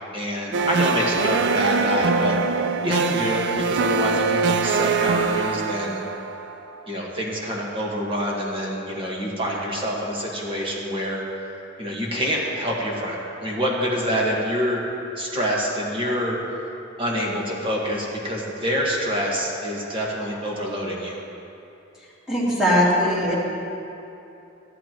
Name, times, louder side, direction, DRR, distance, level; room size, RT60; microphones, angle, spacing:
voice 1, 0.1-6.0 6.9-11.2 11.8-14.8 15.2-16.4 17.0-21.2, equal, 25° right, -3 dB, 1.5 m, -26 dB
sound 1, 0.5-6.8, right 4 dB, 60° right, 0.4 m, -23 dB
voice 2, 22.3-23.3, equal, 5° right, -9 dB, 2.5 m, -20 dB
13.5 x 11.5 x 3.0 m, 2.8 s
head